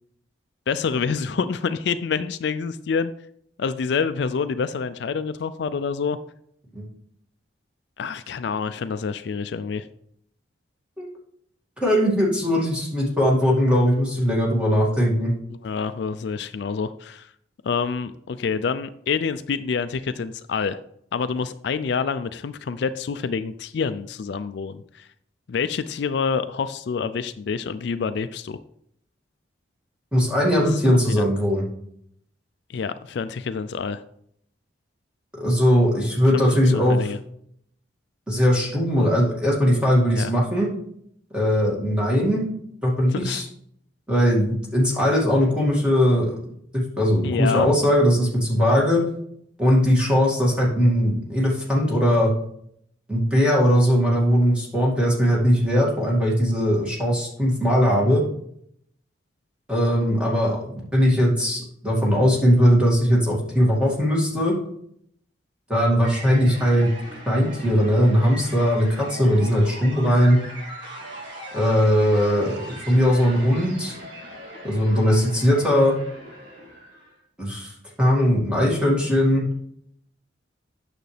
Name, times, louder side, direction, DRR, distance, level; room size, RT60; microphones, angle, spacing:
voice 1, 0.7-3.1 3.6-6.2 8.0-9.9 15.5-17.3 17.6-20.8 21.1-25.1 25.5-28.6 30.9-31.2 32.7-34.0 36.3-37.2 40.2-40.3 43.1-43.4 47.2-47.7, left 5 dB, 65° left, 11 dB, 0.4 m, -27 dB
voice 2, 11.8-15.3 30.1-31.6 35.4-37.0 38.3-40.7 41.3-42.4 42.8-43.4 44.1-46.3 46.7-49.0 49.6-52.3 53.1-58.2 59.7-64.6 65.7-66.9 67.3-70.4 71.5-73.9 74.6-75.9 77.4-77.7 78.0-79.4, equal, 5° right, -4 dB, 2.2 m, -20 dB
sound 1, 66.0-77.2, right 1 dB, 70° right, 2.1 m, -40 dB
9.1 x 6.6 x 3.3 m, 0.69 s
head